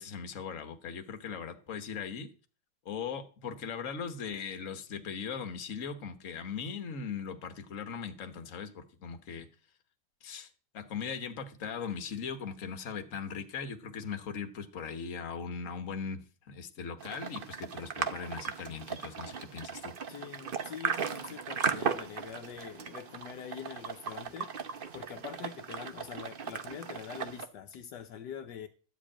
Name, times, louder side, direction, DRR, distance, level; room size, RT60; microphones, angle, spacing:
voice 1, 0.0-2.3 2.8-9.5 10.2-10.5 10.7-20.0, left 6 dB, 50° left, 1.4 m, -39 dB
sound 1, 17.0-27.5, right 6 dB, 45° right, 0.7 m, -37 dB
voice 2, 20.1-24.5 24.9-28.7, left 8 dB, 75° left, 1.4 m, -44 dB
12.5 x 5.0 x 8.7 m
omnidirectional pair, 1.9 m